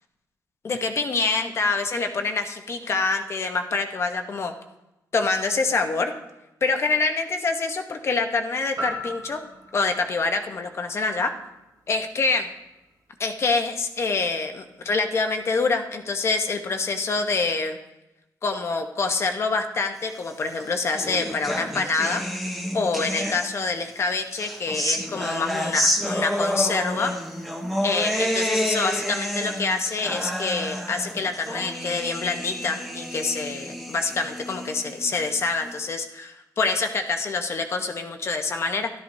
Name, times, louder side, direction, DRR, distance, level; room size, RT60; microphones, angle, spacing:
voice 1, 0.6-4.5 5.1-6.1 6.6-9.4 9.7-11.3 11.9-12.4 13.2-17.8 18.4-22.2 22.7-27.1 27.8-38.9, left 4 dB, 40° left, 5 dB, 1.0 m, -26 dB
sound 1, 8.8-12.8 13.3-13.4, equal, 60° right, 2.3 m, -39 dB
sound 2, 20.4-23.8 24.3-35.8, equal, ahead, 1.0 m, -29 dB
13.5 x 12.5 x 2.7 m, 0.94 s
cardioid pair, 135°, 7 cm